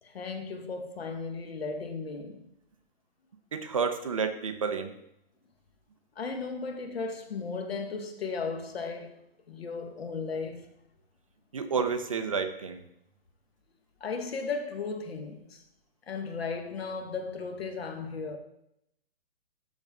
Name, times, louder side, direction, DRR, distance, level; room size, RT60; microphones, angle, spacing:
voice 1, 0.0-2.5 6.2-9.2 9.5-10.7 14.0-15.6 16.1-18.4, left 4 dB, 80° left, 1.4 m, -35 dB
voice 2, 3.5-4.9 11.5-12.8, right 5 dB, 35° right, 0.5 m, -30 dB
12.0 x 4.4 x 3.6 m
hypercardioid pair, 175°, 30 cm